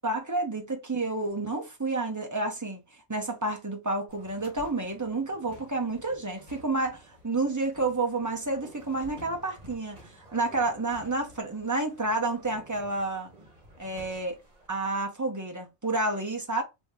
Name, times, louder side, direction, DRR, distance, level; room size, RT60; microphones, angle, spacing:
voice 1, 0.0-13.3 13.8-14.4 14.7-16.6, right 2 dB, 20° right, 0.7 m, -30 dB
sound 1, 4.1-14.7, equal, 35° right, 1.4 m, -52 dB
2.9 x 2.7 x 3.6 m
omnidirectional pair, 1.1 m